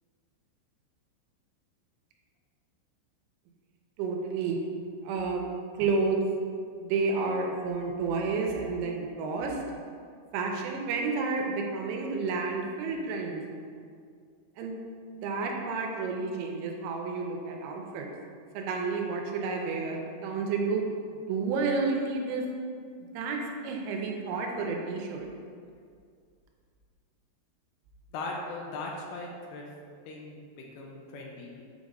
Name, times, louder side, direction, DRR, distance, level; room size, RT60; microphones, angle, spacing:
voice 1, 4.0-4.6 5.0-6.2 6.8-9.6 10.3-13.4 14.6-14.7 15.2-18.1 18.5-20.8 21.3-22.4 23.1-23.4 23.6-25.3, right 4 dB, 85° right, 1 dB, 3.1 m, -30 dB
voice 2, 28.1-29.6 30.1-31.6, left 2 dB, 85° left, -1 dB, 2.5 m, -39 dB
7.8 x 5.2 x 2.5 m, 2.2 s
omnidirectional pair, 5.7 m